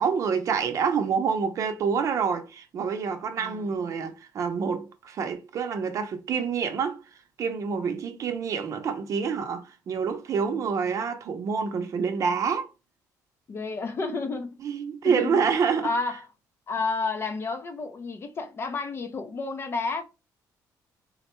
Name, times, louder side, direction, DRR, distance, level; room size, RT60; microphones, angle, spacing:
voice 1, 0.0-7.0 7.4-12.7 14.6-15.9, right 6 dB, 50° right, 0.6 m, -27 dB
voice 2, 3.4-3.8 13.5-14.6 15.0-15.5 15.8-16.3 16.7-20.0, left 3 dB, 35° left, 0.5 m, -31 dB
3.8 x 2.1 x 3.0 m
cardioid pair, 130°, 7 cm